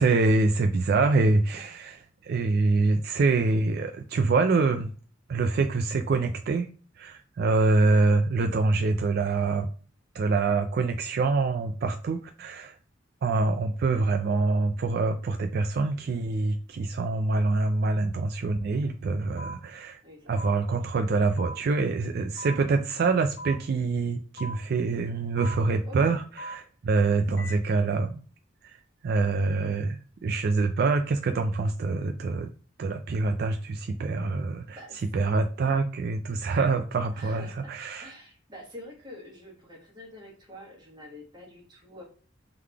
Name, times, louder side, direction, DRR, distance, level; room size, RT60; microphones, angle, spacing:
voice 1, 0.0-2.0 2.2-4.9 5.3-6.7 7.0-9.7 10.1-12.8 13.2-20.0 20.3-28.2 29.0-32.5 32.8-34.8 35.1-38.1, right 3 dB, 50° right, 0.3 m, -25 dB
sound 1, 19.4-19.5 20.4-20.5 21.4-21.5 22.4-22.5 23.4-23.5 24.4-24.5 25.4-25.5 26.4-26.5 27.4-27.5, equal, 60° left, 1.0 m, -38 dB
voice 2, 20.0-20.5 25.8-26.2 26.9-27.4 29.4-29.6 34.7-35.1 37.1-37.7 38.0-42.0, left 1 dB, 20° right, 1.5 m, -47 dB
3.8 x 3.3 x 3.3 m
head